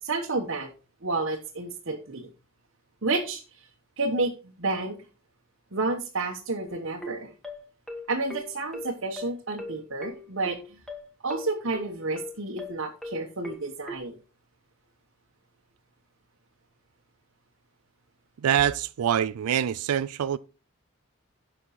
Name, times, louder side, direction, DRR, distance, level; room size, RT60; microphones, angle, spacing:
voice 1, 0.0-0.7 1.0-2.3 3.0-3.6 4.0-4.3 4.6-5.0 5.7-7.3 8.1-10.8 11.2-14.2, right 3 dB, 55° right, 1.3 m, -30 dB
sound 1, 6.7-14.0, left 2 dB, ahead, 1.4 m, -39 dB
voice 2, 18.4-20.4, right 9 dB, 85° right, 0.4 m, -25 dB
10.5 x 6.5 x 4.2 m
head